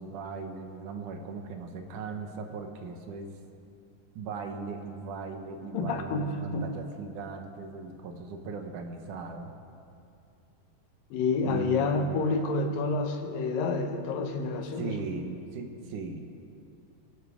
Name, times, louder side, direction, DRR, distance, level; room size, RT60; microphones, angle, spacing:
voice 1, 0.0-3.3 4.2-9.5 11.4-12.0 14.8-16.4, right 4 dB, 70° right, 4 dB, 2.5 m, -38 dB
voice 2, 5.7-6.7 11.1-15.0, left 3 dB, 80° left, 6 dB, 2.8 m, -29 dB
23.5 x 11.5 x 4.9 m, 2.6 s
omnidirectional pair, 3.9 m